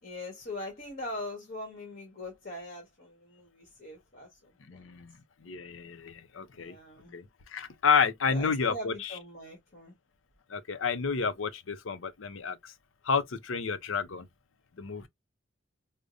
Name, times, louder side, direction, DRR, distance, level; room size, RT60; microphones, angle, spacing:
voice 1, 0.0-4.9 6.5-7.2 8.3-9.9, left 1 dB, 50° left, 1.4 m, -41 dB
voice 2, 4.7-5.1 5.4-6.7 7.1-7.2 7.5-8.9 10.5-12.7 13.0-14.3 14.8-15.1, left 5 dB, 80° left, 0.6 m, -30 dB
4.9 x 2.1 x 2.5 m
head